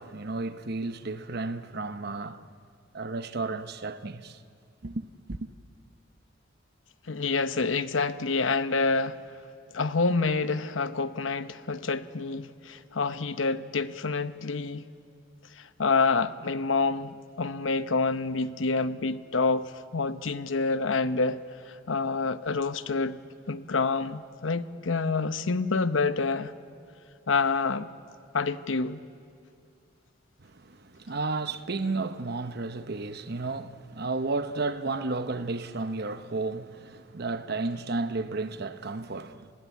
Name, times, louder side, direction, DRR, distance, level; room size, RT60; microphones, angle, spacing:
voice 1, 0.0-2.4 2.9-4.4 4.8-5.5 30.4-39.5, right 3 dB, 55° right, 0.9 m, -33 dB
voice 2, 7.1-9.2 9.7-14.9 15.8-21.4 21.9-23.2 23.5-26.5 27.3-27.9 28.3-29.0, left 4 dB, 90° left, 0.9 m, -27 dB
29.0 x 19.5 x 8.3 m
head